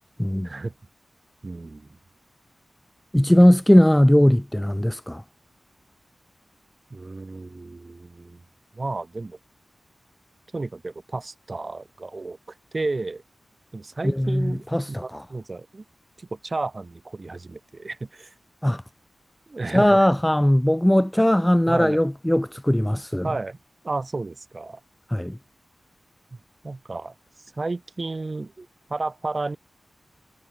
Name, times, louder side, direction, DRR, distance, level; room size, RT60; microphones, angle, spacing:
voice 1, 1.4-1.9 6.9-8.4 8.7-9.4 10.5-12.4 12.7-13.2 13.7-15.8 16.2-18.3 19.5-20.1 21.7-22.0 23.2-23.6 23.8-24.8 26.6-27.1 27.6-29.6, right 3 dB, 45° right, 3.1 m, -32 dB
voice 2, 3.1-5.2 14.0-15.2 18.6-18.8 19.7-23.3 25.1-25.4, left 1 dB, 10° left, 1.1 m, -19 dB
cardioid pair, 45°, 0 cm